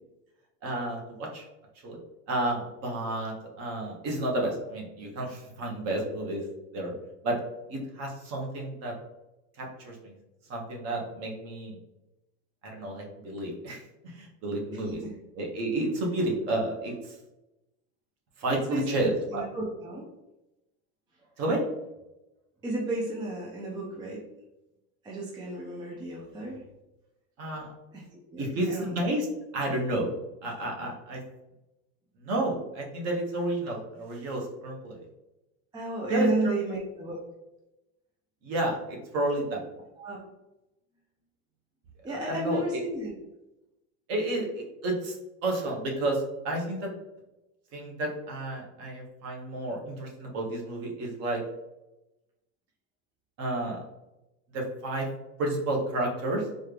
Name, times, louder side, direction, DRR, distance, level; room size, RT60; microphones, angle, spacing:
voice 1, 0.6-1.4 1.8-2.0 2.3-6.4 6.7-6.9 7.2-7.4 7.7-8.9 9.6-10.1 10.5-11.8 12.6-15.0 15.3-17.2 18.4-19.4 21.4-21.6 27.4-27.7 28.4-29.3 29.5-30.1 30.4-31.2 32.2-35.0 36.1-36.7 38.4-39.6 42.1-42.6 44.1-46.9 47.7-51.4 53.4-53.8 54.5-55.1 55.4-56.5, right 1 dB, 40° right, 0 dB, 1.2 m, -31 dB
voice 2, 14.8-15.1 18.5-20.0 22.6-24.2 25.0-26.6 27.5-27.6 27.9-29.0 35.7-37.2 40.0-40.2 42.0-43.1, right 2 dB, 10° right, -2 dB, 0.4 m, -33 dB
4.3 x 2.5 x 3.2 m, 0.97 s
supercardioid pair, 145°, 36 cm